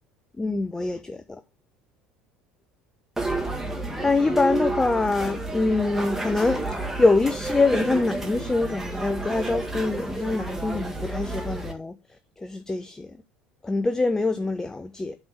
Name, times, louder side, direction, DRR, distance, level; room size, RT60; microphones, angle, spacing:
voice 1, 0.4-1.4 4.0-11.9 12.4-13.2 13.6-15.1, left 3 dB, 15° left, 0.5 m, -24 dB
sound 1, 3.2-11.7, right 2 dB, 5° right, 1.6 m, -30 dB
7.9 x 3.5 x 5.9 m
figure-of-eight pair, 65°, 4 cm